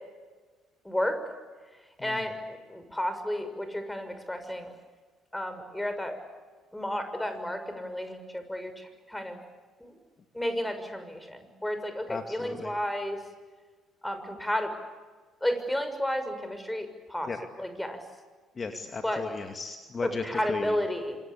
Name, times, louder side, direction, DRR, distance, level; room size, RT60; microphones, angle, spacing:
voice 1, 0.8-1.3 2.0-4.7 5.3-6.2 6.7-9.4 9.8-10.0 10.3-13.2 14.0-14.7 15.4-17.3 17.6-18.0 19.0-19.2 20.0-21.2, left 1 dB, 10° left, 8 dB, 6.4 m, -32 dB
voice 2, 2.0-2.3 12.1-12.7 17.2-17.4 18.6-20.8, left 4 dB, 35° left, 6 dB, 2.5 m, -36 dB
26.5 x 25.0 x 8.5 m, 1.4 s
hypercardioid pair, 50°, 0 cm